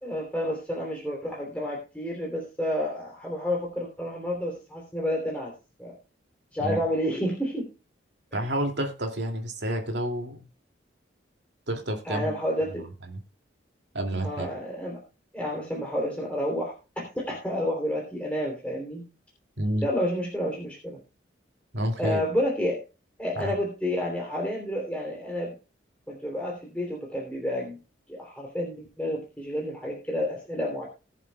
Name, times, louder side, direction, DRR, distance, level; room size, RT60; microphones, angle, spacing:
voice 1, 0.0-5.5 5.8-5.9 6.5-7.7 8.3-8.4 12.0-12.9 14.2-15.0 15.3-19.0 19.8-21.0 22.0-22.8 23.2-25.5 26.1-27.8 28.1-30.9, equal, 5° left, -2 dB, 3.1 m, -30 dB
voice 2, 8.3-10.4 11.7-12.3 12.7-13.2 13.9-14.5 19.6-19.8 21.7-22.2 23.4-23.5, right 1 dB, 65° right, 3 dB, 2.5 m, -29 dB
20.5 x 7.3 x 2.3 m, 0.32 s
head